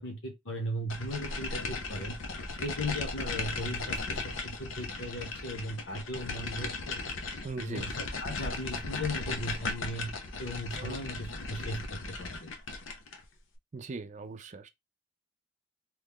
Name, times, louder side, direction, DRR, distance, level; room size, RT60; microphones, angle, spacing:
voice 1, 0.0-2.2 2.6-7.0 7.6-10.1 10.4-12.5, equal, 65° left, 1.1 m, -37 dB
sound 1, 0.9-13.2, left 3 dB, 85° left, 0.7 m, -37 dB
voice 2, 7.4-7.9 10.8-11.0 13.7-14.7, right 4 dB, 40° right, 0.4 m, -39 dB
3.0 x 2.3 x 3.6 m
head